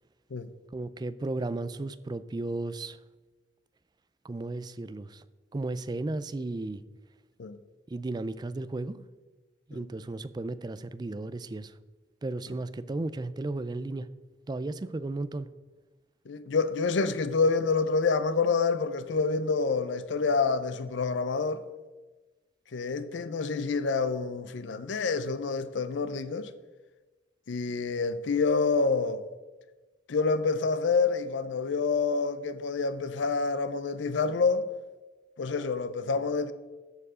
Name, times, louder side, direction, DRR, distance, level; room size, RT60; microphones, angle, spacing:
voice 1, 0.7-3.0 4.2-5.2 5.5-6.8 7.9-9.0 9.7-11.7 12.2-14.1 14.5-15.5, right 2 dB, 25° right, 0.3 m, -34 dB
voice 2, 16.3-21.6 22.7-26.5 27.5-29.2 30.1-34.7 35.4-36.5, left 4 dB, 85° left, 0.5 m, -27 dB
14.0 x 4.6 x 4.9 m
head